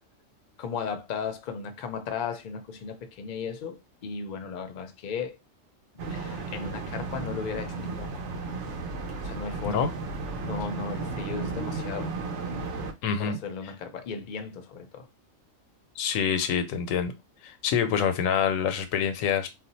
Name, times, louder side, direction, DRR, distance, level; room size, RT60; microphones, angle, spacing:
voice 1, 0.6-5.4 6.1-8.2 9.2-9.9 10.3-12.1 13.2-15.1, left 6 dB, 55° left, 0.6 m, -36 dB
sound 1, 6.0-12.9, right 3 dB, 70° right, 0.9 m, -34 dB
voice 2, 13.0-13.4 16.0-17.1 17.4-19.5, left 7 dB, 90° left, 1.0 m, -26 dB
2.4 x 2.1 x 4.0 m
omnidirectional pair, 1.3 m